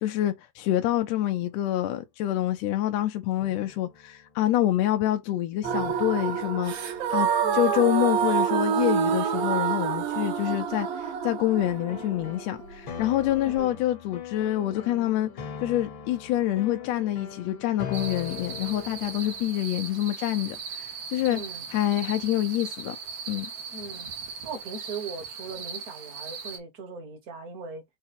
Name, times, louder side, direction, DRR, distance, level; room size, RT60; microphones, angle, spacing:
voice 1, 0.0-15.3 15.6-21.4 21.7-23.0 23.3-23.5, left 13 dB, 75° left, 1.7 m, -27 dB
sound 1, 1.3-1.4 3.4-4.4 5.6-8.9 11.6-19.5, left 7 dB, 55° left, 1.5 m, -42 dB
sound 2, 5.6-13.6, right 7 dB, 85° right, 2.7 m, -27 dB
sound 3, 17.9-26.6, right 5 dB, 65° right, 1.2 m, -39 dB
voice 2, 21.3-21.7 23.7-24.1 24.4-27.8, right 4 dB, 40° right, 1.3 m, -39 dB
5.6 x 2.2 x 4.2 m
omnidirectional pair, 3.4 m